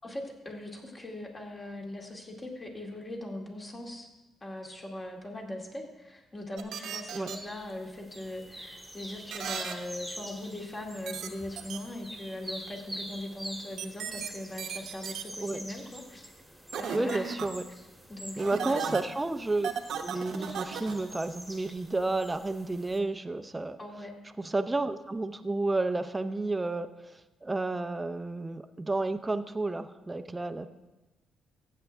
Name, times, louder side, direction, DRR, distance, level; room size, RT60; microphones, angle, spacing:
voice 1, 0.0-4.1 4.4-16.3 16.8-17.4 17.7-18.8 23.8-24.1, left 1 dB, 30° left, 0 dB, 2.3 m, -40 dB
sound 1, 6.6-7.4 9.3-9.7 11.1-11.3 11.6-11.8 13.8-14.3 14.6-15.2 16.7-17.5 18.4-19.0 19.6-21.0, right 7 dB, 75° right, 1.0 m, -35 dB
sound 2, 7.3-23.0, equal, 5° left, 1.9 m, -46 dB
voice 2, 16.9-17.6 18.4-19.7 20.0-23.8 24.4-30.7, right 2 dB, 15° right, 9 dB, 0.6 m, -31 dB
15.0 x 8.4 x 3.5 m, 1.1 s
cardioid pair, 90°, 0 cm